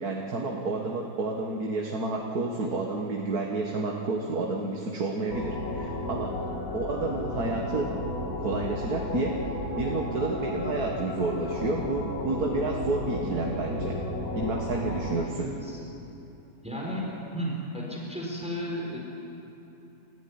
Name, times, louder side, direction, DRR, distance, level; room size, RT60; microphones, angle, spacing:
voice 1, 0.0-6.3 6.7-7.9 8.4-14.0 14.3-15.5, right 3 dB, 70° right, 0 dB, 2.2 m, -30 dB
sound 1, 5.3-15.3, left 1 dB, 65° left, 2.3 m, -33 dB
voice 2, 15.3-15.8 16.6-19.0, equal, 5° right, -3 dB, 4.3 m, -34 dB
30.0 x 14.5 x 9.7 m, 2.9 s
omnidirectional pair, 1.7 m